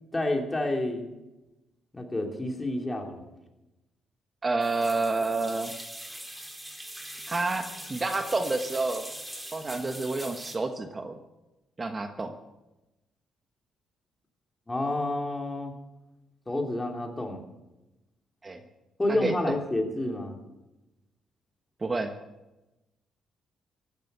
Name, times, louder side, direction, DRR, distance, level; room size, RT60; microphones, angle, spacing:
voice 1, 0.1-1.1 1.9-3.3 14.7-15.7 16.5-17.4 19.0-20.4, left 1 dB, 15° left, 2 dB, 3.0 m, -29 dB
voice 2, 4.4-5.7 7.3-9.1 9.5-11.2 11.8-12.3 18.4-18.6 19.1-19.5 21.8-22.1, right 3 dB, 30° right, 6 dB, 1.2 m, -29 dB
sound 1, 4.6-10.6, right 1 dB, 10° right, 2.8 m, -42 dB
16.0 x 12.0 x 6.8 m, 1.0 s
cardioid pair, 90°, 0 cm